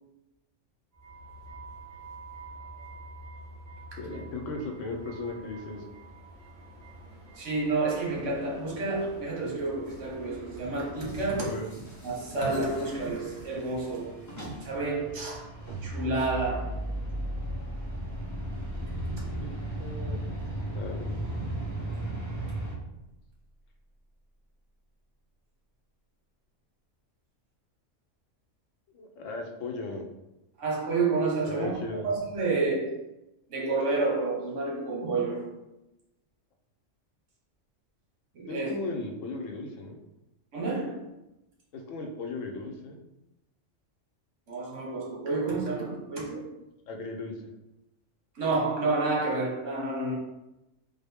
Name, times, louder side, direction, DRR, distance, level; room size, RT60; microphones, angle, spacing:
sound 1, 0.9-11.5, right 2 dB, 50° right, 1.6 m, -47 dB
voice 1, 4.0-5.9 11.4-11.7 19.4-19.5 19.8-20.4 20.7-21.3 28.9-30.1 31.4-32.1 38.5-40.0 41.7-43.0 46.9-47.5, left 2 dB, 90° left, 3 dB, 1.0 m, -37 dB
voice 2, 7.4-11.5 12.0-14.2 14.6-15.5 15.8-16.8 30.6-31.7 32.0-32.9 33.5-35.5 38.3-38.7 40.5-41.0 44.5-46.5 48.3-50.1, right 3 dB, 75° right, -3 dB, 1.3 m, -29 dB
sound 2, 9.8-22.7, right 1 dB, 20° left, 0.6 m, -38 dB
sound 3, 15.7-22.0, right 1 dB, 15° right, 1.1 m, -38 dB
3.7 x 2.1 x 3.4 m, 0.93 s
omnidirectional pair, 1.3 m